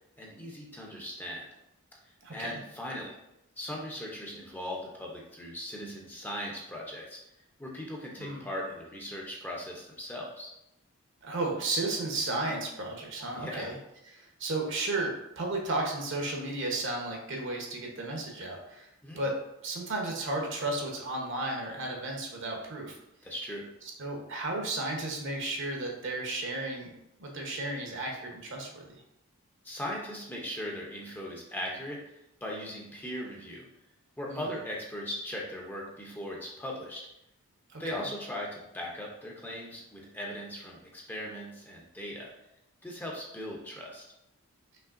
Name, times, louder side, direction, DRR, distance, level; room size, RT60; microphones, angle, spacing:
voice 1, 0.2-1.5 2.3-3.1 3.6-7.2 7.6-10.5 13.4-13.7 19.0-19.2 23.2-23.7 29.6-33.7 34.2-37.1 37.8-42.3 42.8-44.1, equal, 10° left, -2 dB, 0.6 m, -39 dB
voice 2, 2.2-2.6 8.2-8.5 11.2-13.8 14.1-18.9 19.2-19.3 19.6-23.0 24.0-26.9 27.2-29.0 34.3-34.4 37.7-38.0, right 2 dB, 55° right, 1 dB, 0.9 m, -33 dB
5.6 x 3.1 x 2.5 m, 0.83 s
head